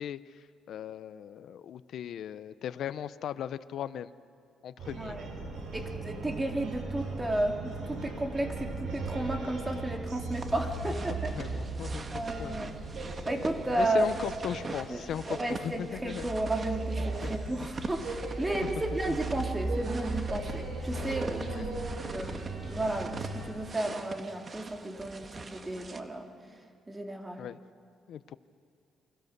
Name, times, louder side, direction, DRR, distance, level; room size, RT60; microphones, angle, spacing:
voice 1, 0.0-4.1 4.6-5.2 10.8-10.9 11.3-12.7 13.7-16.3 17.0-17.7 18.6-18.7 19.1-19.2 21.5-21.7 27.4-27.6 28.1-28.4, left 9 dB, 70° left, 14 dB, 0.7 m, -38 dB
sound 1, 4.8-23.5, right 2 dB, 75° right, 7.4 m, -37 dB
voice 2, 4.9-5.3 5.7-11.3 12.1-12.7 13.2-14.0 14.9-15.0 15.3-21.8 22.1-26.3 26.9-27.4, right 1 dB, 15° right, 3 dB, 2.8 m, -33 dB
sound 2, 10.3-26.0, right 4 dB, 35° right, 1.6 m, -44 dB
28.5 x 23.0 x 6.8 m, 2.3 s
cardioid pair, 90°, 0 cm